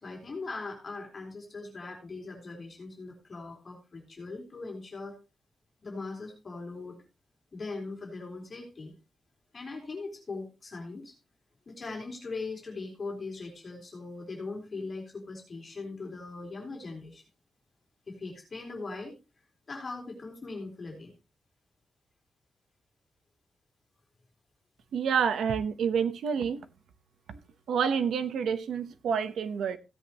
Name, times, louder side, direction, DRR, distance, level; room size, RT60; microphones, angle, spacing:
voice 1, 0.0-5.2 5.8-7.0 7.5-8.9 9.5-11.1 11.7-17.2 18.1-19.2 19.7-21.1, left 3 dB, 30° left, 3.8 m, -40 dB
voice 2, 24.9-26.6 27.3-27.4 27.7-29.8, right 7 dB, 80° right, 1.0 m, -28 dB
16.5 x 8.2 x 3.0 m
wide cardioid pair, 165°, 0 cm